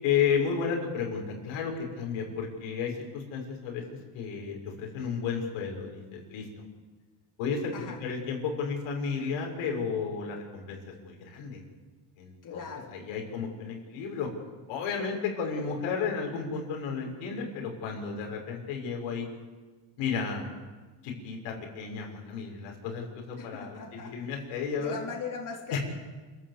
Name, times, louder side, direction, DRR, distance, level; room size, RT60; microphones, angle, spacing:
voice 1, 0.0-3.8 4.1-6.5 7.4-7.7 8.0-11.6 12.2-14.3 14.7-19.3 20.0-20.5 21.0-25.0 25.7-25.8, left 6 dB, 90° left, 1 dB, 6.3 m, -32 dB
voice 2, 12.4-13.0 23.4-24.1 24.8-25.8, left 5 dB, 40° left, -1 dB, 4.1 m, -39 dB
27.5 x 13.5 x 8.4 m, 1.3 s
cardioid pair, 115°, 48 cm